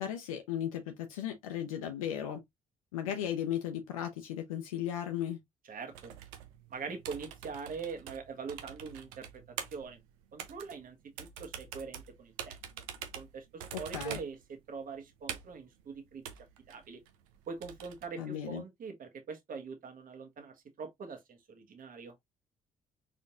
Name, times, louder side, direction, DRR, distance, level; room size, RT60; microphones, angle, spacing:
voice 1, 0.0-2.4 2.9-5.4 13.7-14.2 18.2-18.6, left 10 dB, 85° left, 0.6 m, -36 dB
voice 2, 5.7-6.1 6.7-10.0 10.3-12.6 13.1-16.2 16.7-17.0 17.5-22.2, right 5 dB, 55° right, 1.5 m, -43 dB
sound 1, 5.9-18.1, right 9 dB, 80° right, 0.7 m, -46 dB
4.2 x 3.8 x 2.5 m
hypercardioid pair, 50°, 17 cm